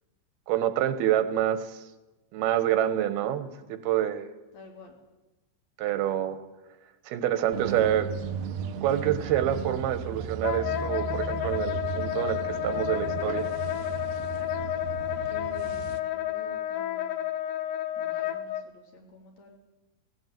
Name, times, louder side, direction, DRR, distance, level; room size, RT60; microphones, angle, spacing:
voice 1, 0.5-1.8 2.3-4.3 5.8-6.4 7.1-8.1 8.8-13.5, right 11 dB, 85° right, 11 dB, 3.1 m, -27 dB
voice 2, 4.5-5.0 15.3-17.2 18.0-19.6, left 1 dB, 50° left, 2 dB, 4.0 m, -49 dB
sound 1, 7.5-16.0, right 7 dB, 70° right, 1.7 m, -36 dB
Wind instrument woodwind instrument, 10.4-18.6, left 12 dB, 70° left, 2.1 m, -31 dB
18.0 x 16.5 x 9.3 m, 1.1 s
omnidirectional pair, 4.3 m